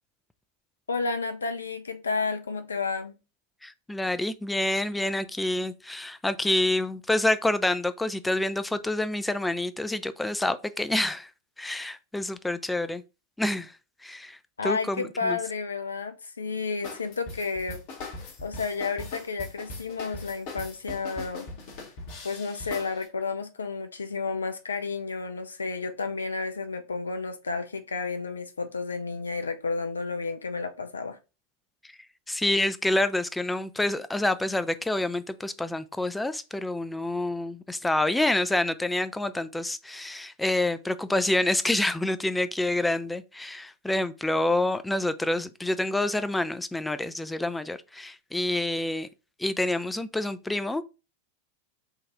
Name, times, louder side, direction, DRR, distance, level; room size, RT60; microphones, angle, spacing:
voice 1, 0.9-3.2 14.6-17.8 18.4-21.5 22.2-31.2, left 4 dB, 75° left, 0.5 m, -31 dB
voice 2, 3.6-11.3 11.6-13.0 13.4-13.7 14.0-15.4 32.3-49.1 49.4-50.8, left 1 dB, 5° left, 0.3 m, -27 dB
sound 1, 16.8-23.1, left 2 dB, 45° left, 1.0 m, -40 dB
4.0 x 2.5 x 3.4 m
figure-of-eight pair, 90°, 0 cm